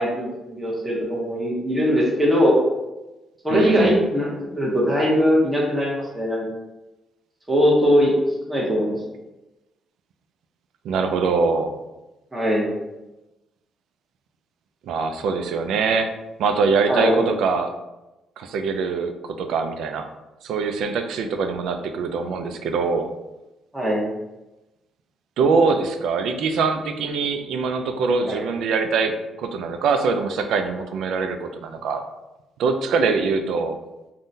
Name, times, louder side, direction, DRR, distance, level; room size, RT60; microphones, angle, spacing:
voice 1, 0.0-2.6 3.4-6.4 7.5-8.1 8.5-9.0 12.3-12.6 16.9-17.2 23.7-24.0 28.2-28.5, equal, 10° right, -5 dB, 0.8 m, -20 dB
voice 2, 3.5-4.0 10.8-11.7 14.8-16.1 16.4-17.7 18.4-20.1 20.4-23.1 25.4-29.1 29.4-32.0 32.6-33.8, right 4 dB, 80° right, 6 dB, 0.3 m, -23 dB
3.6 x 2.1 x 2.6 m, 1.0 s
cardioid pair, 90°, 0 cm